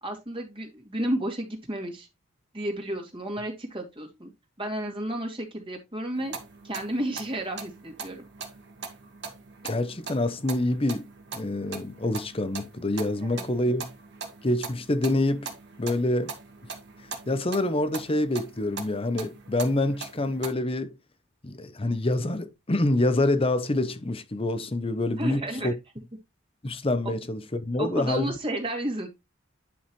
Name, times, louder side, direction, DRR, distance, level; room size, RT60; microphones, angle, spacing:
voice 1, 0.0-2.1 2.5-4.3 4.6-6.3 6.6-8.2 13.2-13.4 25.2-25.7 27.0-27.1 27.8-29.1, right 1 dB, 25° right, 2.4 m, -32 dB
sound 1, 6.2-20.5, right 4 dB, 60° right, 1.9 m, -41 dB
voice 2, 9.6-11.1 11.3-13.8 14.4-15.5 15.8-16.3 17.3-20.9 21.4-25.7 26.6-28.3, left 1 dB, 30° left, 0.8 m, -26 dB
10.0 x 5.5 x 3.1 m
head